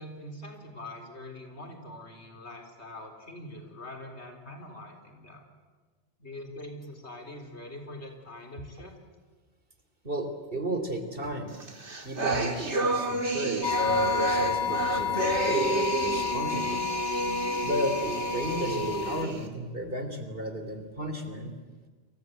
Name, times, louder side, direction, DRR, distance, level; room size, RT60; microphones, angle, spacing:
voice 1, 0.0-5.5 6.2-9.0, left 1 dB, 75° left, 4 dB, 4.2 m, -43 dB
voice 2, 10.0-11.6 12.0-16.9 17.6-21.5, right 1 dB, 55° right, 7 dB, 3.4 m, -34 dB
sound 1, 11.6-19.5, right 2 dB, 90° right, 2.8 m, -29 dB
sound 2, 13.6-19.2, left 10 dB, 45° left, 1.1 m, -31 dB
29.5 x 23.5 x 8.0 m, 1.4 s
omnidirectional pair, 1.1 m